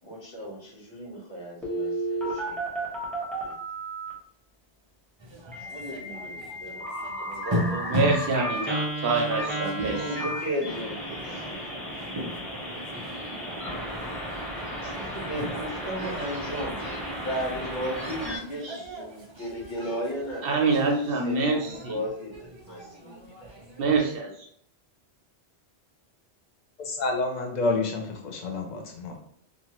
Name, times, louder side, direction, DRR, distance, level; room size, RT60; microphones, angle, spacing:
voice 1, 0.0-2.9 3.4-3.5 5.6-8.6 9.8-11.0 11.2-11.7 14.8-20.9 21.2-23.2, equal, 80° left, -6 dB, 1.5 m, -36 dB
Telephone, 1.6-4.1 5.5-18.4, right 1 dB, ahead, 0.7 m, -34 dB
sound 1, 5.2-24.2, equal, 45° right, 0.3 m, -38 dB
voice 2, 7.9-10.0 20.4-22.0 23.8-24.3, right 3 dB, 65° right, 1 dB, 0.7 m, -25 dB
voice 3, 26.8-29.2, left 3 dB, 50° left, 3 dB, 0.6 m, -29 dB
2.6 x 2.4 x 2.9 m, 0.65 s
omnidirectional pair, 1.1 m